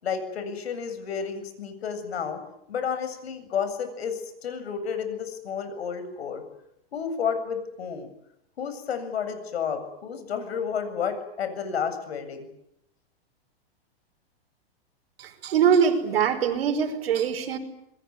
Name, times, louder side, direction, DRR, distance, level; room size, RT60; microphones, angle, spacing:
voice 1, 0.0-2.4 2.7-6.4 6.9-8.1 8.6-12.5, left 7 dB, 90° left, 7.9 m, -31 dB
voice 2, 15.2-17.6, right 7 dB, 70° right, 5.3 m, -23 dB
27.0 x 22.0 x 9.6 m
supercardioid pair, 175°, 30 cm